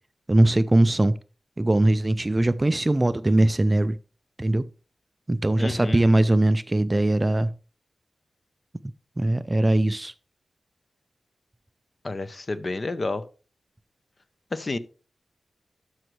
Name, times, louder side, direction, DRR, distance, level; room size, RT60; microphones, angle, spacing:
voice 1, 0.3-1.1 1.6-4.0 4.4-4.7 5.3-7.5 9.2-10.1, right 1 dB, 20° right, 0.3 m, -21 dB
voice 2, 5.6-6.1 12.0-13.3 14.5-14.8, left 2 dB, 35° left, 0.7 m, -30 dB
12.5 x 6.2 x 3.2 m
wide cardioid pair, 135°, 0 cm